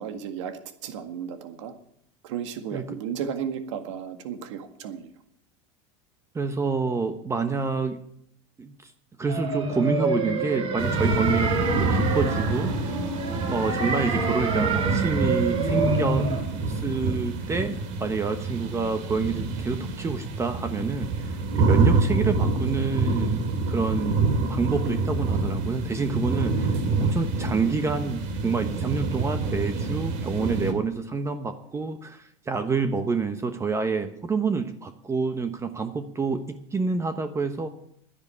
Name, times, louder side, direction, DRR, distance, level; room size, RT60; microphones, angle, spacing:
voice 1, 0.0-1.7 2.2-5.1, right 8 dB, 80° right, 7 dB, 1.9 m, -34 dB
voice 2, 6.3-8.0 8.6-8.9 9.2-12.9 13.5-16.3 16.7-23.4 23.7-24.2 24.5-37.7, right 4 dB, 20° right, 8 dB, 1.1 m, -28 dB
sound 1, 9.3-16.4, right 3 dB, 40° right, 4.8 m, -27 dB
sound 2, 10.8-30.7, right 3 dB, 55° right, 2.6 m, -27 dB
11.0 x 10.5 x 8.4 m, 0.71 s
supercardioid pair, 120°, 15 cm